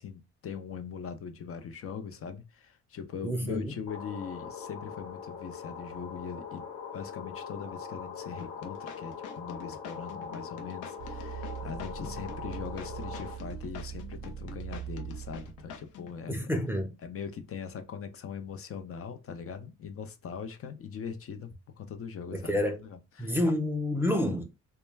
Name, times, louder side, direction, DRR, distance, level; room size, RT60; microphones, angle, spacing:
voice 1, 0.0-6.7 6.9-16.5 17.0-23.4, left 6 dB, 50° left, 0.5 m, -41 dB
voice 2, 3.2-3.7 16.3-16.9 22.3-22.8 23.2-24.4, left 1 dB, 10° right, 0.5 m, -29 dB
sound 1, 3.9-13.3, left 6 dB, 75° left, 1.1 m, -42 dB
sound 2, 8.4-16.2, left 7 dB, 90° left, 0.6 m, -47 dB
sound 3, 11.0-15.9, right 9 dB, 55° right, 0.6 m, -41 dB
2.2 x 2.1 x 3.2 m
cardioid pair, 90°, 30 cm